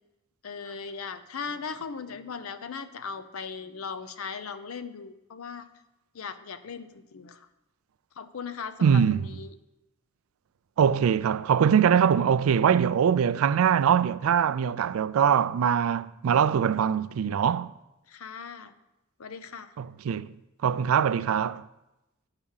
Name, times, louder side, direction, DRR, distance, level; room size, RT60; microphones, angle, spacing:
voice 1, 0.4-5.7 6.1-7.5 8.2-9.5 18.1-18.7 19.2-19.7, left 5 dB, 90° left, 0.6 m, -38 dB
voice 2, 8.8-9.3 10.8-17.7 19.8-20.3 20.6-21.6, right 8 dB, 85° right, 0.3 m, -22 dB
9.9 x 4.9 x 5.6 m
head